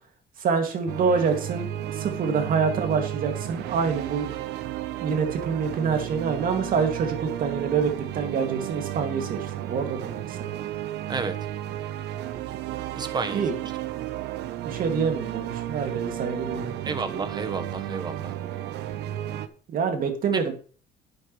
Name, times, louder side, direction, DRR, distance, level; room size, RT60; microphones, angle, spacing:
voice 1, 0.4-1.7 1.9-4.3 5.0-10.7 13.3-13.5 13.9-14.1 14.7-17.0 19.7-20.5, right 5 dB, 55° right, 5 dB, 2.3 m, -26 dB
sound 1, 0.9-19.5, right 12 dB, 80° right, 0.9 m, -33 dB
voice 2, 12.9-13.4 16.8-18.4 20.3-20.4, right 4 dB, 25° right, 9 dB, 1.2 m, -31 dB
11.5 x 8.4 x 3.2 m, 0.41 s
cardioid pair, 110°, 17 cm